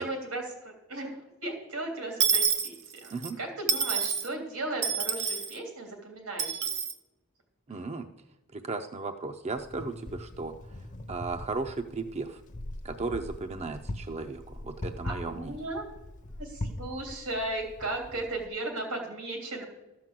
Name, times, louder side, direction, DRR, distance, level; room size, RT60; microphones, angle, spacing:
voice 1, 0.0-2.8 3.0-6.6 15.0-15.8 16.4-19.6, right 2 dB, 85° right, 2 dB, 3.2 m, -36 dB
Dishes pots and pans / Coin (dropping), 2.2-3.3 3.7-4.3 4.8-5.5 6.4-6.9, right 7 dB, 55° right, 0.9 m, -27 dB
voice 2, 7.7-8.1 8.5-12.4 12.8-15.6, right 3 dB, 30° right, 6 dB, 0.5 m, -36 dB
Wind, 9.6-18.5, left 1 dB, 35° left, 0.8 m, -41 dB
13.0 x 5.9 x 7.6 m, 1.0 s
head